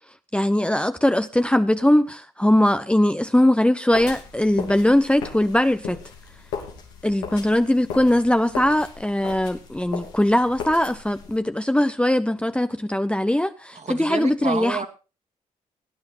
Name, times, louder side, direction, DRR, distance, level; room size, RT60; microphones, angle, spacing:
voice 1, 0.3-6.0 7.0-14.9, left 1 dB, 5° left, 0.9 m, -20 dB
sound 1, 3.9-11.4, left 6 dB, 90° left, 3.0 m, -37 dB
voice 2, 13.7-14.9, right 5 dB, 45° right, 2.4 m, -29 dB
17.5 x 9.9 x 4.3 m
hypercardioid pair, 45°, 16 cm